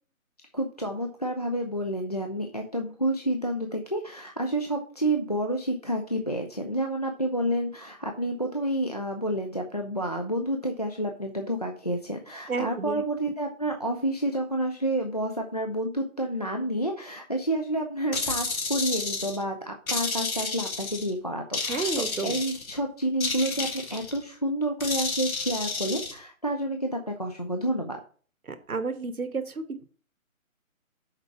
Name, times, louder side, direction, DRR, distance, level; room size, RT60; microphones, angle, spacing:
voice 1, 0.5-28.0, right 1 dB, 30° left, 3 dB, 0.5 m, -29 dB
voice 2, 12.5-13.0 21.7-22.4 28.5-29.9, right 4 dB, 90° right, 9 dB, 1.4 m, -31 dB
sound 1, 18.1-19.4 19.9-21.1 21.5-22.8 23.2-24.2 24.8-26.1, left 3 dB, 75° left, 1.8 m, -31 dB
6.6 x 4.7 x 5.7 m, 0.43 s
figure-of-eight pair, 165°, 42 cm